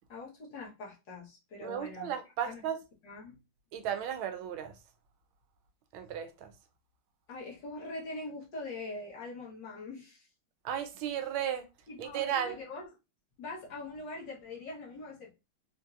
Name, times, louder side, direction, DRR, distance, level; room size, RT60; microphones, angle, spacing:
voice 1, 0.1-2.1 2.4-2.7 3.0-3.4 7.3-10.3 11.9-12.9 13.4-15.3, left 2 dB, 60° left, 1.7 m, -43 dB
voice 2, 1.6-2.8 3.7-4.7 5.9-6.5 10.6-11.6 12.0-12.6, right 9 dB, 85° right, 1.4 m, -34 dB
4.4 x 2.7 x 2.4 m
omnidirectional pair, 2.3 m